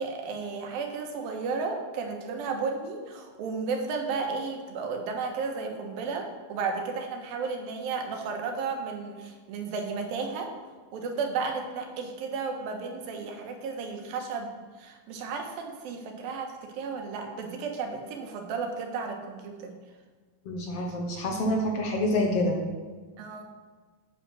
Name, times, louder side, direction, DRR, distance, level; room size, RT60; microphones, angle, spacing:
voice 1, 0.0-10.5 10.9-14.5 14.8-19.7 23.2-23.4, right 4 dB, 85° right, 3 dB, 3.1 m, -33 dB
voice 2, 20.4-22.6, left 1 dB, 65° left, 1 dB, 1.6 m, -27 dB
8.7 x 8.4 x 6.2 m, 1.4 s
omnidirectional pair, 4.0 m